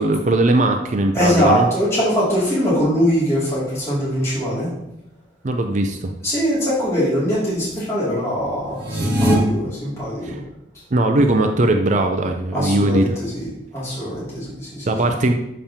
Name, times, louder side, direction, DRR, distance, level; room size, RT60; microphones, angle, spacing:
voice 1, 0.0-1.7 5.4-6.1 10.2-10.4 10.9-13.2 14.8-15.3, right 2 dB, 45° right, 5 dB, 0.5 m, -19 dB
voice 2, 1.1-4.7 6.2-10.4 12.5-13.5 13.7-15.0, equal, 15° left, -10 dB, 2.5 m, -22 dB
sound 1, 8.7-9.3, equal, 65° right, 1.9 m, -19 dB
7.2 x 5.2 x 2.8 m, 0.88 s
head